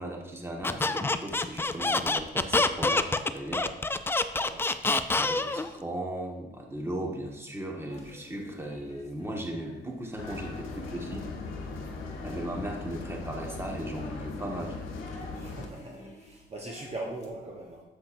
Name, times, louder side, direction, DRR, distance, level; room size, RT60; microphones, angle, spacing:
voice 1, 0.0-3.7 5.2-11.3 12.2-14.7, right 1 dB, 10° right, 0 dB, 1.4 m, -37 dB
Squeak, 0.6-5.7, left 3 dB, 10° left, 0.3 m, -26 dB
sound 1, 7.8-17.3, left 1 dB, 35° left, 1.5 m, -49 dB
sound 2, 10.2-15.7, left 4 dB, 90° left, 1.0 m, -39 dB
voice 2, 15.3-17.8, right 2 dB, 30° right, -1 dB, 1.0 m, -40 dB
7.6 x 7.4 x 2.6 m, 1.0 s
cardioid pair, 90°, 20 cm